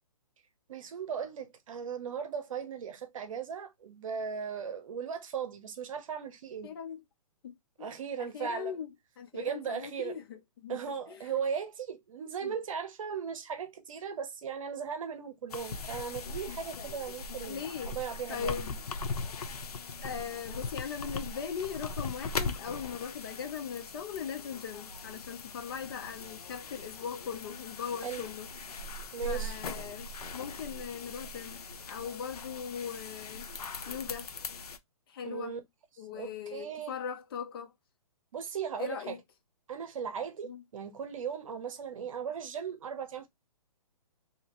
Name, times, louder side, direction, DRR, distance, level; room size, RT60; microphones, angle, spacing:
voice 1, 0.7-6.7 7.8-8.7 9.3-10.2 10.7-18.5 28.0-28.3 29.1-29.5 35.2-35.6 36.1-37.0 38.3-39.2 39.7-43.3, right 7 dB, 60° right, 0.8 m, -37 dB
voice 2, 6.6-7.0 7.4-7.9 8.2-8.9 9.2-10.8 11.1-11.3 12.4-12.5 17.4-17.9 18.3-18.8 20.0-28.5 29.2-33.5 33.9-34.3 35.1-35.5 36.0-37.7 38.8-39.2 40.4-40.6, left 7 dB, 40° left, 0.5 m, -39 dB
sound 1, 15.5-34.8, left 3 dB, 80° left, 0.7 m, -40 dB
2.8 x 2.8 x 2.9 m
hypercardioid pair, 155°, 20 cm